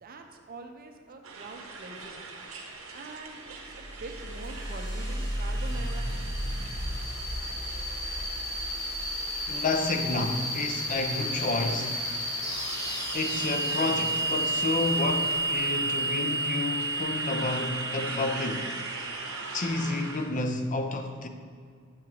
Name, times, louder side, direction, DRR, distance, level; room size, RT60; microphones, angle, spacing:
voice 1, 0.0-2.3 2.9-6.3 7.2-7.7, right 3 dB, 45° right, 0.5 m, -45 dB
sound 1, 1.2-20.3, right 3 dB, 80° right, 0.8 m, -42 dB
sound 2, 3.6-20.0, right 1 dB, 20° left, 1.0 m, -32 dB
voice 2, 9.5-12.0 13.1-18.7 19.5-21.3, left 3 dB, 40° left, 0.5 m, -30 dB
7.1 x 6.2 x 2.9 m
head